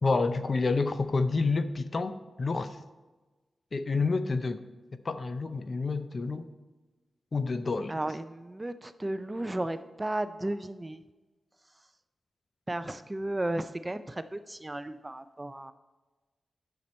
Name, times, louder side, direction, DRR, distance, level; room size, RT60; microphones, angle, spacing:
voice 1, 0.0-2.1 2.4-2.8 3.7-4.6 5.0-6.5 7.3-7.9, left 3 dB, 45° left, 11 dB, 0.6 m, -28 dB
voice 2, 7.9-11.0 12.7-15.7, right 1 dB, 20° right, 12 dB, 0.4 m, -34 dB
9.6 x 6.7 x 4.3 m, 1.2 s
wide cardioid pair, 90°, 0 cm